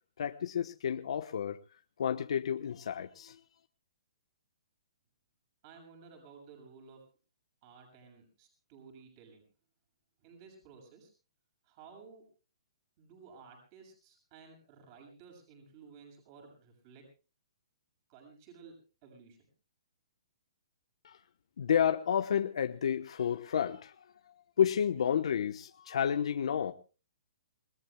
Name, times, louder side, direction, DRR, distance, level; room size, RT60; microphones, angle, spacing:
voice 1, 0.2-1.6 2.0-3.4 21.0-21.2 21.6-26.7, left 8 dB, 70° left, 1.0 m, -31 dB
voice 2, 5.6-7.0 7.6-9.4 10.2-11.1 11.6-12.3 13.0-17.1 18.1-19.5, right 5 dB, 35° right, 7.0 m, -55 dB
28.0 x 18.5 x 2.2 m
hypercardioid pair, 150°, 3 cm